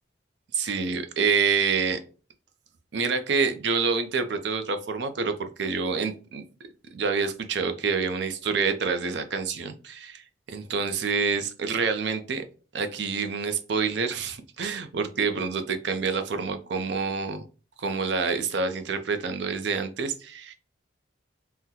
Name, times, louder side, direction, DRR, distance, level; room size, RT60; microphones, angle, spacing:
voice 1, 0.5-2.0 2.9-6.4 6.9-12.4 12.7-17.4 17.8-20.5, right 5 dB, 60° right, 9 dB, 0.5 m, -27 dB
3.7 x 2.1 x 2.8 m, 0.36 s
head